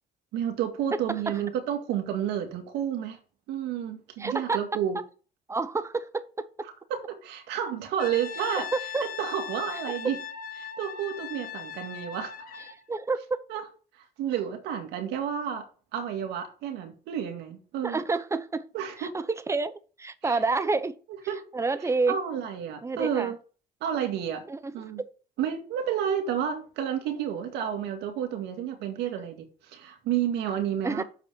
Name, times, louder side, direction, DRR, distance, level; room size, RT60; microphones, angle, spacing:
voice 1, 0.3-3.2 3.5-5.0 6.9-8.7 9.2-10.2 10.6-12.6 13.5-13.6 13.9-15.7 15.9-18.0 18.7-19.2 20.2-20.7 21.3-21.4 22.1-23.4 23.8-24.5 24.7-25.0 25.4-31.0, right 9 dB, 85° right, 2.1 m, -31 dB
voice 2, 4.2-4.6 5.5-6.7 8.6-9.0 9.9-10.0 12.9-13.4 17.8-18.7 19.0-21.0 21.5-22.2 22.8-23.3 24.5-25.1 30.8-31.0, right 3 dB, 15° right, 0.8 m, -29 dB
Brass instrument, 8.0-12.8, left 7 dB, 55° left, 1.3 m, -39 dB
7.1 x 5.3 x 6.2 m
cardioid pair, 110°, 17 cm